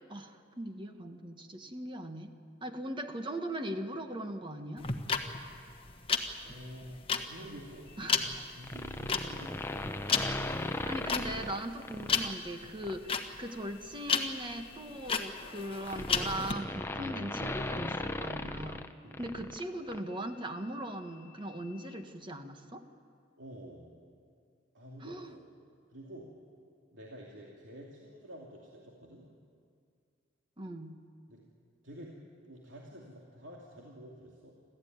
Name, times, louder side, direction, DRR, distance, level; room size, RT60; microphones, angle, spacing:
voice 1, 0.1-2.3 2.6-4.9 8.0-8.4 9.2-9.3 10.8-18.9 19.2-22.8 25.0-25.3 30.6-31.0, right 1 dB, 25° right, 6 dB, 1.4 m, -39 dB
sound 1, 4.8-16.5, left 6 dB, 30° left, 1.3 m, -33 dB
voice 2, 6.4-9.9 19.0-19.2 23.4-23.9 24.7-25.4 25.9-26.3 26.9-29.3 31.3-31.4 31.8-34.5, equal, 75° right, -3 dB, 2.8 m, -49 dB
sound 2, 8.6-12.3 12.8-13.1 14.3-19.6 19.9-20.0, left 1 dB, 10° left, 0.7 m, -38 dB
26.0 x 14.5 x 9.5 m, 2.2 s
head